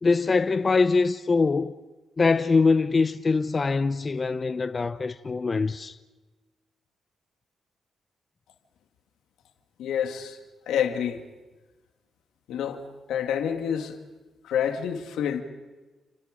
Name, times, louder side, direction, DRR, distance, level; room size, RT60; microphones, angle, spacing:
voice 1, 0.0-1.8 2.2-6.0, left 4 dB, 40° left, 0.8 m, -23 dB
voice 2, 9.8-10.4 10.7-11.2 12.5-12.8 13.1-14.0 14.4-15.4, left 8 dB, 90° left, 2.1 m, -28 dB
29.5 x 26.5 x 5.2 m
cardioid pair, 65°, 0 cm